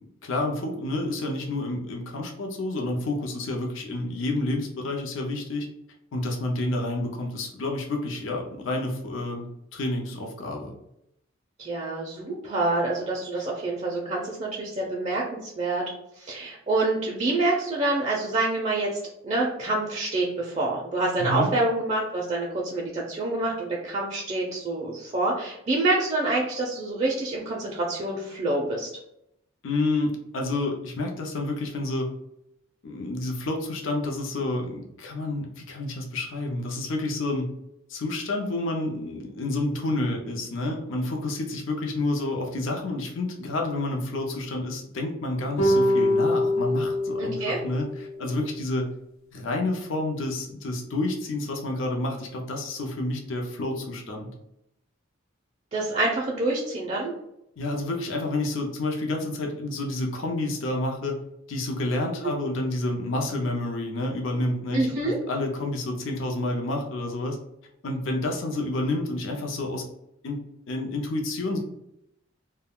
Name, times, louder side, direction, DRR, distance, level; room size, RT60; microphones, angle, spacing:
voice 1, 0.2-5.7 6.1-10.7 13.3-13.4 21.2-21.5 29.6-32.1 32.8-37.5 37.9-48.9 49.3-54.3 57.6-61.2 61.5-67.4 67.8-69.8 70.2-71.6, left 2 dB, 70° left, 1 dB, 0.5 m, -29 dB
voice 2, 11.6-15.8 16.2-18.9 19.2-28.9 47.2-47.6 55.7-57.1 64.7-65.2, right 2 dB, 35° right, -2 dB, 0.4 m, -27 dB
sound 1, 45.6-48.1, left 1 dB, 85° left, 0.9 m, -24 dB
2.3 x 2.1 x 3.5 m, 0.80 s
head